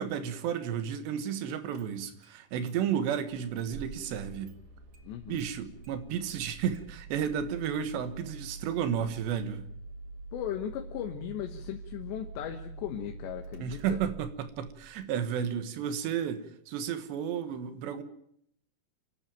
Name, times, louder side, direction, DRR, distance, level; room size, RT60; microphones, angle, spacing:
voice 1, 0.0-4.5 5.3-9.7 13.6-18.0, right 8 dB, 80° right, 3.6 m, -32 dB
Engine starting, 1.2-1.3 1.7-2.4 2.7-2.8 3.1-15.0, right 3 dB, 55° right, 3.1 m, -46 dB
voice 2, 5.0-5.4 10.3-14.0, left 10 dB, 85° left, 3.4 m, -37 dB
29.5 x 12.0 x 9.1 m
omnidirectional pair, 4.9 m